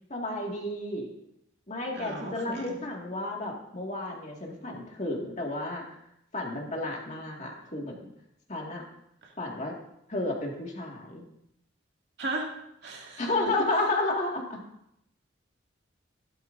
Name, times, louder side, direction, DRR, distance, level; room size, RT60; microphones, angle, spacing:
voice 1, 0.1-1.1 1.7-5.9 6.3-8.0 8.5-8.8 9.4-9.7 10.1-11.2 13.2-14.6, left 2 dB, 40° left, 0 dB, 2.0 m, -32 dB
voice 2, 1.9-2.7 9.2-9.3 12.2-12.5 12.8-13.6, right 2 dB, 60° right, -1 dB, 2.3 m, -36 dB
15.5 x 12.0 x 2.6 m, 0.78 s
head